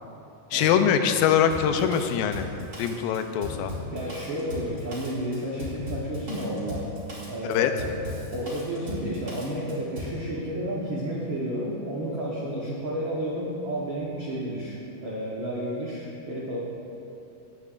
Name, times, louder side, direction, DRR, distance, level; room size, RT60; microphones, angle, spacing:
voice 1, 0.5-2.5 2.8-3.7 7.5-7.7, left 8 dB, 85° left, 7 dB, 2.3 m, -23 dB
Drum kit, 1.5-10.2, left 2 dB, 30° right, 2.8 m, -37 dB
voice 2, 3.8-6.9 7.3-7.9 8.2-16.6, equal, 85° right, -5 dB, 1.0 m, -31 dB
18.5 x 8.8 x 2.5 m, 2.8 s
omnidirectional pair, 4.1 m